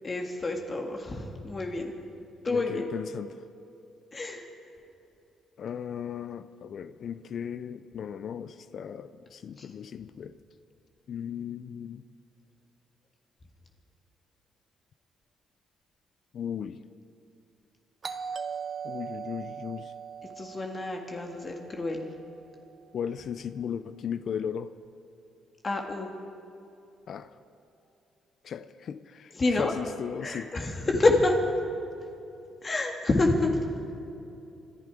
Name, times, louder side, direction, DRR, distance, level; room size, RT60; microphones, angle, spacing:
voice 1, 0.0-1.9 2.4-2.9 4.1-4.5 9.6-9.7 20.4-22.1 25.6-26.1 29.3-29.7 30.2-31.4 32.6-33.5, left 2 dB, 35° left, 2 dB, 1.9 m, -28 dB
voice 2, 2.5-3.4 5.6-10.4 11.1-12.1 16.3-16.8 18.8-19.9 22.9-24.7 27.1-27.4 28.4-30.5, left 8 dB, 60° left, 13 dB, 0.5 m, -36 dB
Doorbell, 18.0-22.6, right 6 dB, 45° right, 1.0 m, -40 dB
25.5 x 11.5 x 4.9 m, 2.7 s
supercardioid pair, 70°, 0 cm